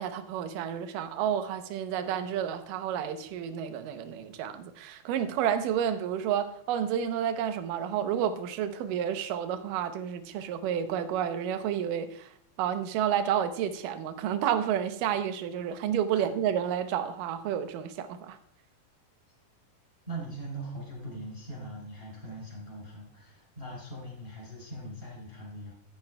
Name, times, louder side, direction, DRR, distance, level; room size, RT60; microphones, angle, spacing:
voice 1, 0.0-18.4, right 9 dB, 75° right, 2.3 m, -30 dB
voice 2, 20.1-25.7, right 1 dB, 15° right, 2.8 m, -41 dB
14.0 x 9.4 x 2.2 m
omnidirectional pair, 4.2 m